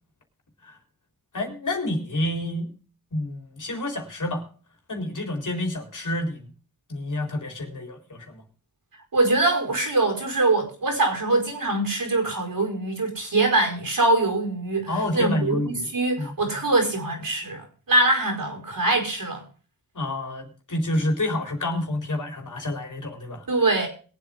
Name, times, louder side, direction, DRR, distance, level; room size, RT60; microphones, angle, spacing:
voice 1, 1.3-2.7 3.1-4.5 4.9-6.5 6.9-8.4 14.9-15.9 16.2-16.3 19.9-23.5, left 1 dB, 50° left, 3.9 m, -28 dB
voice 2, 9.1-19.4 23.5-23.9, right 2 dB, 60° right, 5.1 m, -23 dB
22.0 x 8.0 x 3.7 m
cardioid pair, 65°, 38 cm